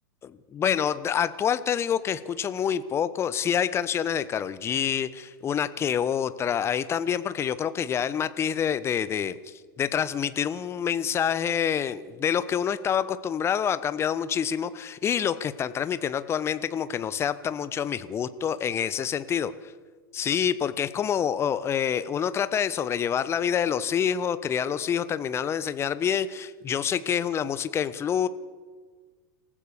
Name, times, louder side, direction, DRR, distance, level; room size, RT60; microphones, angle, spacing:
voice 1, 0.2-19.5 20.1-28.3, left 8 dB, 20° left, 14 dB, 1.0 m, -27 dB
26.5 x 15.0 x 6.8 m, 1.5 s
figure-of-eight pair, 95°, 11 cm